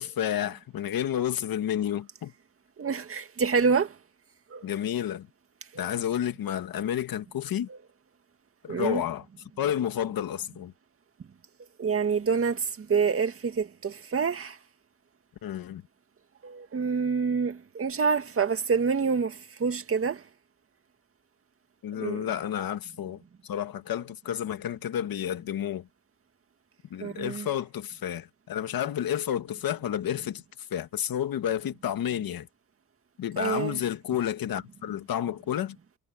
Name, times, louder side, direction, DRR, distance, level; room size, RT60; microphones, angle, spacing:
voice 1, 0.0-2.3 4.6-5.3 5.8-7.7 8.6-9.3 9.6-10.7 15.4-15.8 21.8-25.9 26.9-30.4 30.7-32.5 33.2-35.8, left 10 dB, 90° left, 1.7 m, -30 dB
voice 2, 2.8-4.0 4.5-4.6 5.7-5.9 7.7-7.8 8.7-9.0 11.8-14.6 16.4-20.2 22.0-22.2 27.0-27.5 33.4-33.8, right 5 dB, 40° right, 2.0 m, -27 dB
wide cardioid pair, 150°, 34 cm